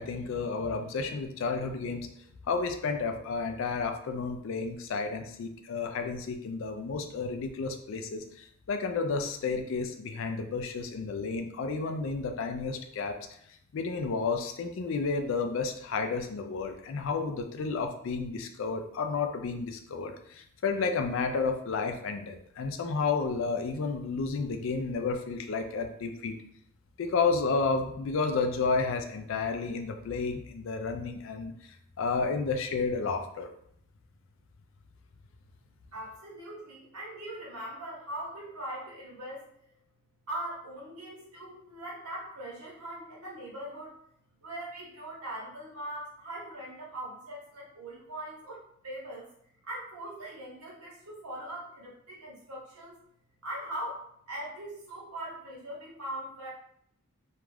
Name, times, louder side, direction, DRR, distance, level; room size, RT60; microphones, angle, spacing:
voice 1, 0.0-2.1 2.5-13.2 13.7-26.4 27.0-31.5 32.0-33.5, left 4 dB, 60° left, 6 dB, 0.3 m, -31 dB
voice 2, 35.9-39.4 40.3-44.0 44.4-49.3 49.6-53.0 53.4-56.5, right 1 dB, 90° right, -4 dB, 1.0 m, -41 dB
2.4 x 2.2 x 3.2 m, 0.69 s
head